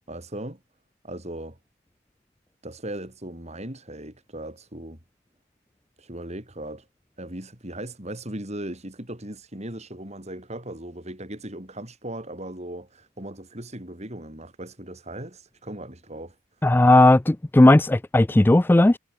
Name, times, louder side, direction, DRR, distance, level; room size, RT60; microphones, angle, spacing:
voice 1, 0.1-0.6 1.0-1.6 2.6-5.0 6.0-6.9 7.2-16.4 16.7-16.8, right 1 dB, 30° right, 4.1 m, -38 dB
voice 2, 16.6-19.0, left 1 dB, 10° left, 0.3 m, -16 dB
head